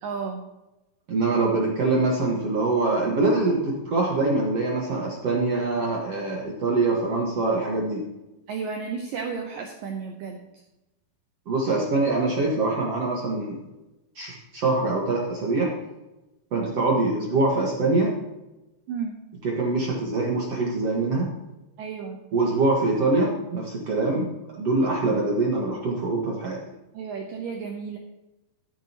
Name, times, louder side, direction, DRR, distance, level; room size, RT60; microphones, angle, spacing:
voice 1, 0.0-0.4 8.5-10.4 18.9-19.2 21.8-22.2 26.9-28.0, right 5 dB, 90° right, 3 dB, 1.9 m, -32 dB
voice 2, 1.1-8.0 11.4-13.6 14.1-15.7 16.5-18.1 19.4-21.3 22.3-24.3 24.5-26.6, right 3 dB, 55° right, -2 dB, 1.8 m, -24 dB
13.0 x 10.0 x 3.0 m, 0.99 s
omnidirectional pair, 5.2 m